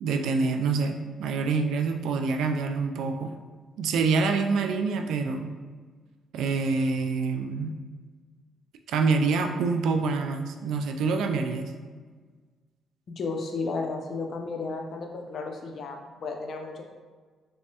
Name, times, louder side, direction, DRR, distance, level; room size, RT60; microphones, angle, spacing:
voice 1, 0.0-3.3 3.8-5.5 6.3-7.8 8.9-11.7, right 4 dB, 80° right, 5 dB, 0.3 m, -26 dB
voice 2, 13.1-16.8, left 3 dB, 55° left, 3 dB, 0.5 m, -33 dB
3.4 x 3.1 x 2.8 m, 1.5 s
cardioid pair, 90°, 0 cm